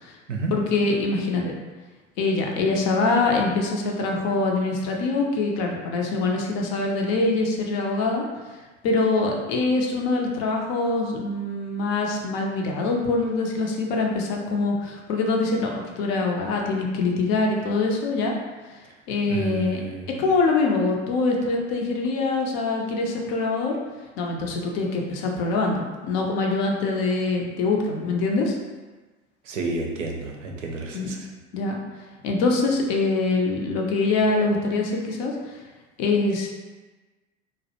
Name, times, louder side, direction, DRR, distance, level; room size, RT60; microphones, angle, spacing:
voice 1, 0.5-1.5 2.2-8.3 8.8-18.3 19.1-19.8 20.1-23.8 24.2-28.6 30.9-31.1 31.5-31.8 32.2-35.6 36.0-36.5, left 3 dB, 45° left, 0 dB, 0.5 m, -24 dB
voice 2, 19.3-20.1 29.5-31.2, right 3 dB, 80° right, 1 dB, 0.5 m, -30 dB
2.3 x 2.0 x 2.7 m, 1.2 s
figure-of-eight pair, 75°, 37 cm